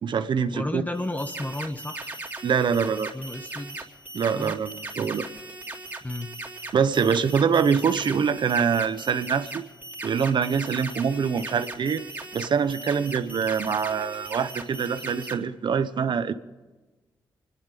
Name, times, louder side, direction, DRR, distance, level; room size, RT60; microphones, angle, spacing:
voice 1, 0.0-0.8 2.4-3.1 4.1-5.3 6.7-9.6 10.0-12.0 12.3-16.3, right 6 dB, 65° right, 11 dB, 1.0 m, -24 dB
voice 2, 0.5-2.1 3.1-3.9 4.2-4.5 6.0-6.3, left 1 dB, 20° left, 7 dB, 1.3 m, -33 dB
sound 1, 0.9-15.3, right 2 dB, 20° right, 3.3 m, -39 dB
24.5 x 10.5 x 5.3 m, 1.2 s
cardioid pair, 55°, 8 cm